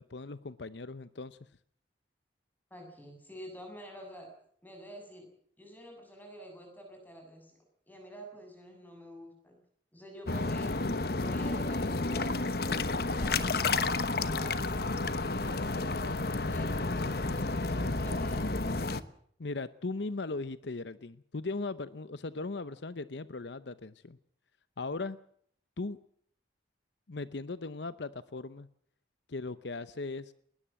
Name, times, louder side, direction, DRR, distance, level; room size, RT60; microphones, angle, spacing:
voice 1, 0.0-1.4 19.4-24.2 24.8-25.2 25.8-26.0 27.1-28.7 29.3-30.3, left 3 dB, 75° left, 14 dB, 0.8 m, -38 dB
voice 2, 2.7-4.3 4.6-5.3 5.6-7.6 7.9-9.6 9.9-10.8 11.1-14.9 15.4-18.8, equal, 10° left, 3 dB, 7.5 m, -49 dB
sound 1, 10.3-19.0, left 3 dB, 55° left, 1.1 m, -31 dB
20.5 x 19.5 x 7.6 m, 0.64 s
head